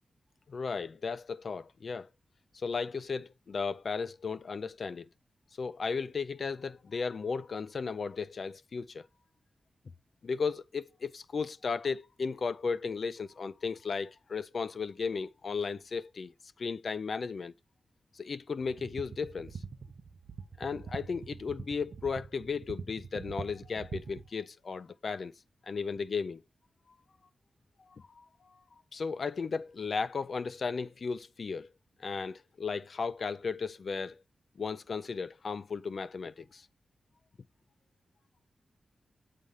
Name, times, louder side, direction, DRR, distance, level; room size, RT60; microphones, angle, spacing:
voice 1, 0.5-2.1 2.5-5.1 5.6-9.1 10.2-16.3 16.6-17.5 18.1-19.6 20.6-25.3 25.6-26.4 27.9-28.2 28.9-31.7 32.0-34.2 34.6-36.7, left 5 dB, 60° left, 0.3 m, -35 dB
sound 1, 18.6-24.3, right 5 dB, 65° right, 0.6 m, -44 dB
7.5 x 3.3 x 5.4 m
wide cardioid pair, 105°, 0 cm